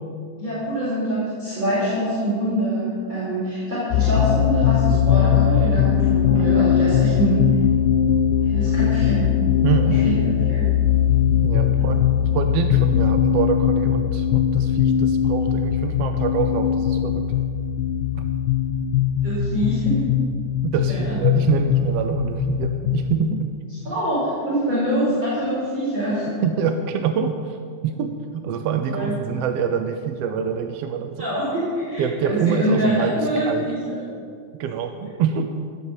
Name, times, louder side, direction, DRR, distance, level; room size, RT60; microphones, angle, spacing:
voice 1, 0.4-7.5 8.5-9.4 9.8-10.1 10.5-10.7 11.8-11.9 19.2-20.0 20.9-21.2 23.8-26.3 28.8-29.1 31.2-34.0, right 1 dB, 35° right, -10 dB, 5.6 m, -24 dB
sound 1, 3.9-23.2, left 9 dB, 85° left, 2.2 m, -20 dB
voice 2, 9.6-10.0 11.4-12.0 12.3-17.3 18.2-18.3 20.6-23.5 26.4-27.6 27.8-31.3 32.0-33.7 34.6-35.5, right 7 dB, 70° right, 6 dB, 1.5 m, -25 dB
17.0 x 8.4 x 7.4 m, 2.1 s
omnidirectional pair, 3.5 m